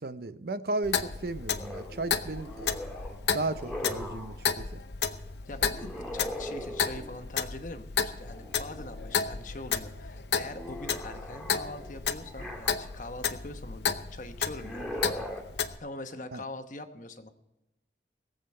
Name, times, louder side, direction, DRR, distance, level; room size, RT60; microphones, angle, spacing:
voice 1, 0.0-2.7 3.3-4.7 16.3-16.4, right 2 dB, 60° right, 12 dB, 0.6 m, -34 dB
Clock, 0.8-15.8, left 6 dB, 75° left, 0.7 m, -33 dB
sound 1, 1.6-4.4 5.7-7.3 8.2-9.2 9.6-13.1 14.4-15.4, left 1 dB, ahead, 2.0 m, -41 dB
voice 2, 5.5-14.9 15.8-17.3, left 2 dB, 45° left, 7 dB, 1.0 m, -43 dB
21.0 x 7.9 x 4.3 m, 0.96 s
head